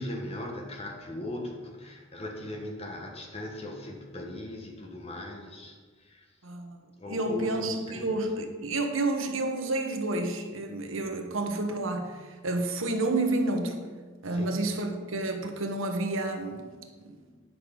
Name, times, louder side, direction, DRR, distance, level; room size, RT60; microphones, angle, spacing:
voice 1, 0.0-6.4 7.0-8.1 14.3-14.6, left 1 dB, 30° left, 2 dB, 1.4 m, -39 dB
voice 2, 6.4-6.8 7.1-13.8 14.2-16.6, right 2 dB, 85° right, 4 dB, 1.2 m, -30 dB
9.9 x 6.3 x 5.2 m, 1.4 s
head